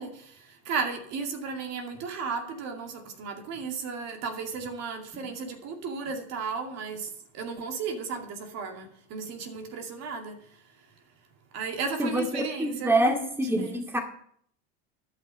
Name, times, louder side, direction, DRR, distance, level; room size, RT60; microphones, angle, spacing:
voice 1, 0.0-10.6 11.5-13.8, right 5 dB, 55° right, 2.4 m, -35 dB
voice 2, 12.0-14.0, right 1 dB, 5° right, 2.1 m, -26 dB
12.5 x 6.0 x 7.5 m
supercardioid pair, 100°, 32 cm